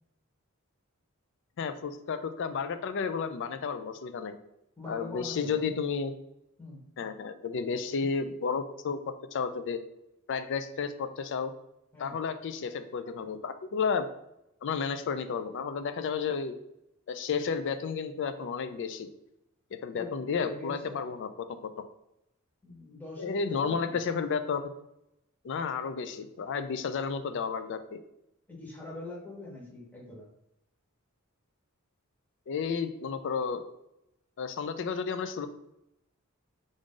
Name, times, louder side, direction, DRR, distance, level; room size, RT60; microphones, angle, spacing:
voice 1, 1.6-4.4 4.9-6.1 7.0-9.8 10.3-11.5 12.0-14.1 14.6-16.6 17.1-19.1 19.7-21.3 23.2-24.6 25.4-28.0 32.5-33.6 34.4-35.5, left 5 dB, 60° left, 10 dB, 0.4 m, -32 dB
voice 2, 4.8-5.7 6.6-6.8 11.9-12.2 19.9-21.1 22.6-24.0 28.5-30.3, left 2 dB, 10° left, -4 dB, 1.0 m, -44 dB
4.8 x 2.6 x 3.7 m, 0.84 s
head